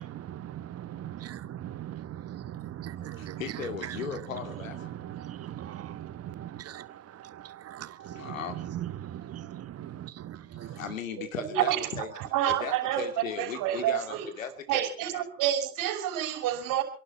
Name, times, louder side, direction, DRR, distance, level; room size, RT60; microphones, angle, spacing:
voice 1, 0.0-3.4 3.9-4.2 4.8-10.8, right 12 dB, 40° right, 1.4 m, -40 dB
voice 2, 3.1-5.1 8.0-8.6 10.5-15.2, left 7 dB, 90° left, 2.6 m, -38 dB
voice 3, 11.2-14.2 14.7-16.8, right 11 dB, 55° right, 5.9 m, -29 dB
29.0 x 11.5 x 4.4 m
hypercardioid pair, 85°, 39 cm